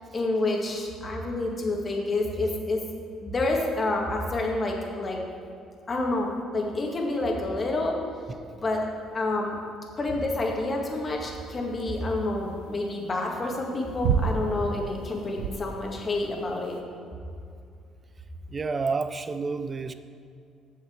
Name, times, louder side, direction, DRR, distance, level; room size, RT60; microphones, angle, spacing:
voice 1, 0.1-2.8 3.2-5.2 5.9-8.0 8.5-8.9 9.1-9.6 10.0-16.8, left 2 dB, 35° left, 0 dB, 2.0 m, -28 dB
sound 1, 11.3-16.8, right 6 dB, 90° right, 0.6 m, -31 dB
voice 2, 18.5-19.9, right 4 dB, 35° right, 10 dB, 0.6 m, -29 dB
7.7 x 7.2 x 6.5 m, 2.4 s
supercardioid pair, 75°, 0 cm